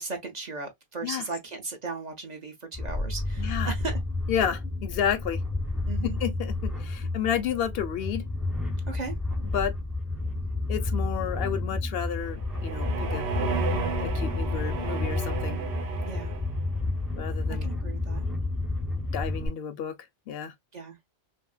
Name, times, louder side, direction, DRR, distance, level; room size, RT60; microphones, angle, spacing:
voice 1, 0.0-4.0 5.9-6.2 8.8-9.1 16.0-16.3 17.5-18.3 20.7-21.0, right 4 dB, 45° right, 0.8 m, -37 dB
Creepy Bassy Atmo (loop), 2.7-19.5, left 2 dB, ahead, 0.4 m, -31 dB
voice 2, 3.4-3.7 4.3-5.4 6.0-8.2 9.5-9.7 10.7-13.3 14.0-15.6 17.2-17.7 19.1-19.9 20.3-20.5, left 9 dB, 70° left, 0.7 m, -31 dB
sound 1, 12.1-16.7, right 5 dB, 75° right, 0.9 m, -33 dB
3.1 x 2.7 x 2.3 m
omnidirectional pair, 1.1 m